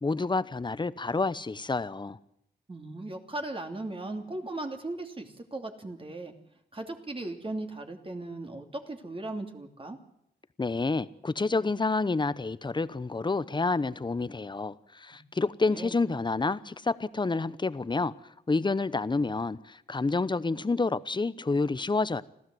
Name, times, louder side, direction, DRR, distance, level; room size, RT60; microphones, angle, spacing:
voice 1, 0.0-2.2 10.6-18.1 18.5-22.2, left 3 dB, 25° left, 0.9 m, -29 dB
voice 2, 2.7-6.3 6.7-10.0 15.6-16.0, right 2 dB, 30° right, 2.9 m, -37 dB
26.5 x 15.0 x 7.8 m
cardioid pair, 80°, 18 cm